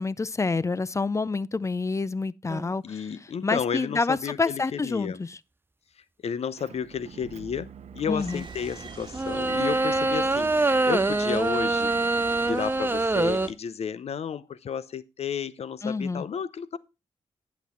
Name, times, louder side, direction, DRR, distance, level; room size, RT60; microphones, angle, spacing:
voice 1, 0.0-3.0 3.4-5.4 8.1-8.4 15.8-16.2, left 4 dB, 25° left, 0.5 m, -28 dB
sound 1, 2.5-2.7 9.1-13.5, right 2 dB, 20° right, 0.6 m, -24 dB
voice 2, 2.8-5.2 6.2-11.9 12.5-16.8, left 7 dB, 70° left, 0.6 m, -32 dB
Motor vehicle (road) / Engine, 6.6-12.7, right 5 dB, 75° right, 0.8 m, -44 dB
sound 2, 8.2-13.5, right 4 dB, 45° right, 1.6 m, -44 dB
10.5 x 6.1 x 4.3 m
cardioid pair, 60°, 11 cm